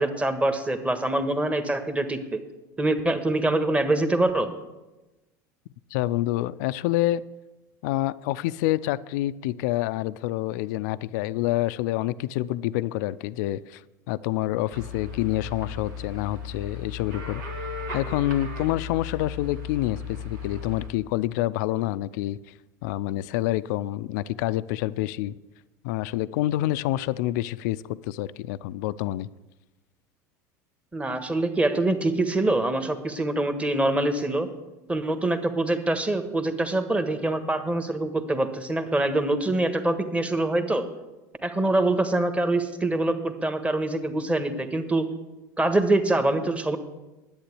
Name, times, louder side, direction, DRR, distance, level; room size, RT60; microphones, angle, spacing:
voice 1, 0.0-2.4 2.8-4.5 30.9-34.5 34.9-40.8 41.4-45.1 45.6-46.8, right 2 dB, 15° right, 8 dB, 1.5 m, -24 dB
voice 2, 5.9-7.2 7.8-13.8 14.1-17.4 17.9-22.4 22.8-25.3 25.8-29.3, left 15 dB, 70° left, 16 dB, 0.4 m, -27 dB
sound 1, 14.7-20.9, left 4 dB, 85° right, 2.4 m, -36 dB
10.5 x 8.8 x 8.4 m, 1.1 s
hypercardioid pair, 85°, 10 cm